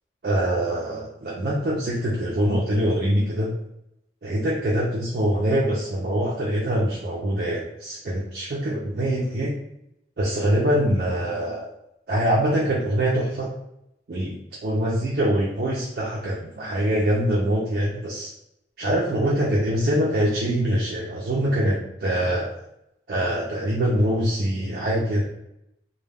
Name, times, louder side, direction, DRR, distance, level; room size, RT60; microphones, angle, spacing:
voice 1, 0.2-3.5 4.2-9.5 10.2-11.7 12.1-13.5 14.1-14.4 14.6-18.3 18.8-22.5 23.1-25.2, right 1 dB, 55° right, -4 dB, 0.4 m, -24 dB
2.2 x 2.1 x 3.2 m, 0.80 s
head